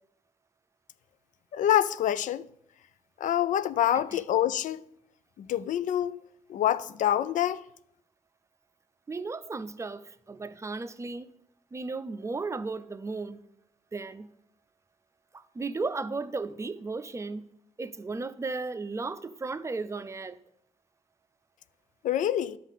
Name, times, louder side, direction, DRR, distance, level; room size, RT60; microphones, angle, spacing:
voice 1, 1.5-2.5 3.2-4.8 5.4-6.2 6.5-7.6 22.0-22.6, left 11 dB, 70° left, 0.4 m, -26 dB
voice 2, 9.1-11.3 11.7-13.4 13.9-14.3 15.3-17.5 17.8-20.4, right 3 dB, 20° right, 0.5 m, -35 dB
11.0 x 3.7 x 7.4 m
cardioid pair, 90°, 13 cm